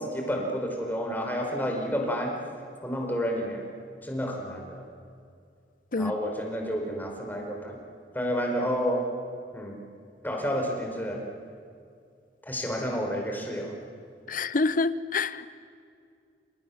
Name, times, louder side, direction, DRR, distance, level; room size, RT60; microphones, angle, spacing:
voice 1, 0.0-2.3 2.8-3.6 4.0-4.9 6.0-7.8 8.1-9.0 9.5-9.7 10.2-11.2 12.4-13.7, equal, 10° left, 1 dB, 5.0 m, -30 dB
voice 2, 14.3-15.5, left 3 dB, 50° left, 15 dB, 0.9 m, -26 dB
29.5 x 27.5 x 7.3 m, 2.3 s
head